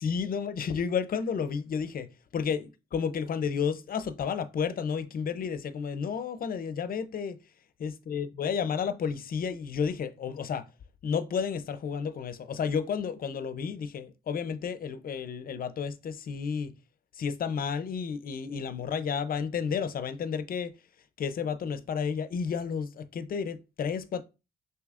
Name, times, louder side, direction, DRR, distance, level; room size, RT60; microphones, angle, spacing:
voice 1, 0.0-7.4 7.8-10.7 11.0-16.7 17.1-20.7 21.2-24.2, left 6 dB, 45° left, 0.5 m, -31 dB
6.2 x 2.8 x 2.4 m
cardioid pair, 90°, 20 cm